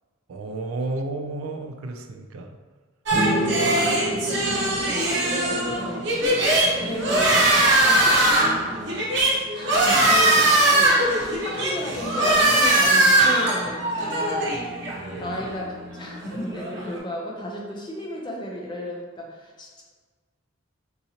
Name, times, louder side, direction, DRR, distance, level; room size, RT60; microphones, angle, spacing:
voice 1, 0.3-2.6 6.6-6.9 15.0-15.4, right 2 dB, 80° right, 5 dB, 0.4 m, -33 dB
sound 1, 3.1-6.7, equal, 90° left, 0.9 m, -30 dB
sound 2, 3.1-17.0, right 1 dB, 55° right, 0.7 m, -21 dB
voice 2, 3.2-6.1 6.7-7.4 7.8-8.6 9.5-11.0 11.4-14.5 15.2-19.8, equal, 20° left, -1 dB, 0.5 m, -33 dB
3.8 x 2.8 x 2.8 m, 1.4 s
head